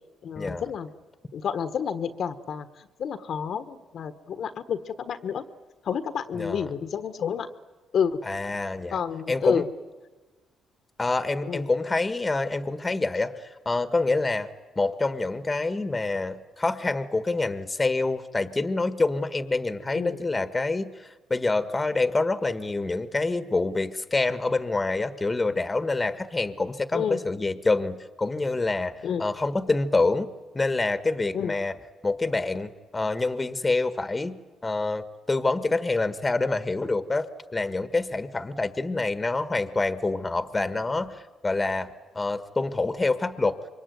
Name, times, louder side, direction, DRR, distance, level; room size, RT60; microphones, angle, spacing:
voice 1, 0.2-0.9 1.3-5.4 5.8-7.5 7.9-8.2 8.9-9.7 11.5-11.7 19.9-20.2 26.9-27.2 29.0-29.2 31.3-31.5, left 7 dB, 60° left, 11 dB, 1.5 m, -30 dB
voice 2, 6.3-6.7 8.3-9.0 9.3-9.6 11.0-14.5 14.7-31.7 32.0-43.6, left 3 dB, 20° left, 11 dB, 1.5 m, -27 dB
27.0 x 23.5 x 9.4 m, 1.2 s
cardioid pair, 90°, 0 cm